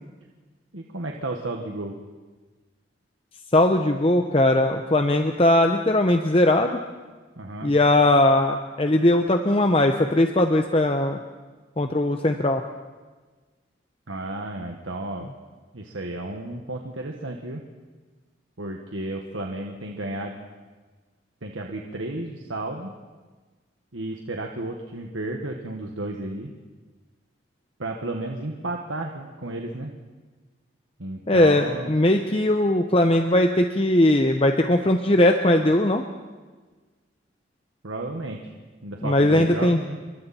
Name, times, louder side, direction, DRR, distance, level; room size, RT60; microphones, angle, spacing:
voice 1, 0.7-2.0 7.4-7.7 14.1-15.3 15.7-17.6 18.6-20.4 21.4-22.9 23.9-26.5 27.8-29.9 31.0-31.9 37.8-38.5 38.8-40.0, right 2 dB, 90° right, 2 dB, 1.7 m, -33 dB
voice 2, 3.5-6.8 7.6-11.2 11.8-12.6 31.3-36.0 39.0-39.8, left 1 dB, 30° left, 5 dB, 0.9 m, -19 dB
28.5 x 23.5 x 4.4 m, 1.3 s
head